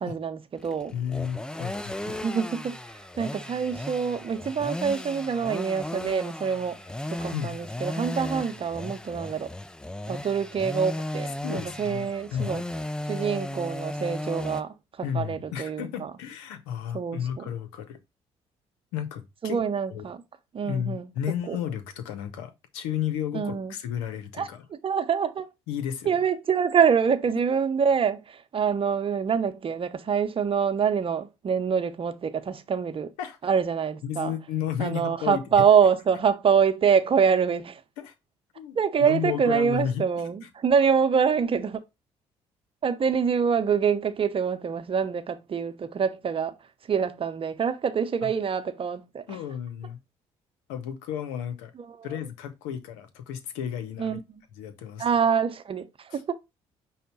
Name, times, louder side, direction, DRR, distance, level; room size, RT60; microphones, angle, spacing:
voice 1, 0.0-0.9 2.2-2.8 3.2-6.8 7.2-9.5 10.1-12.6 13.1-14.7 15.1-16.1 16.9-17.4 19.4-20.2 20.5-21.1 21.5-21.6 23.3-23.7 24.4-24.5 24.8-25.5 26.1-33.1 33.4-34.3 34.8-37.8 38.8-41.8 42.8-46.5 46.9-49.2 54.0-54.2 55.0-56.3, right 6 dB, 40° right, 0.7 m, -25 dB
sound 1, 0.6-14.6, left 1 dB, 5° left, 0.4 m, -35 dB
voice 2, 0.9-2.2 7.3-7.6 11.4-12.6 15.0-18.0 18.9-19.6 19.9-20.1 20.6-24.7 25.7-26.2 33.2-33.4 34.0-35.7 38.0-38.1 38.6-40.0 40.4-40.5 48.2-48.3 49.3-50.0 50.7-51.7 52.0-54.2 54.5-55.1 56.1-56.3, left 9 dB, 85° left, 0.7 m, -33 dB
5.4 x 2.1 x 4.0 m
hypercardioid pair, 60°, 14 cm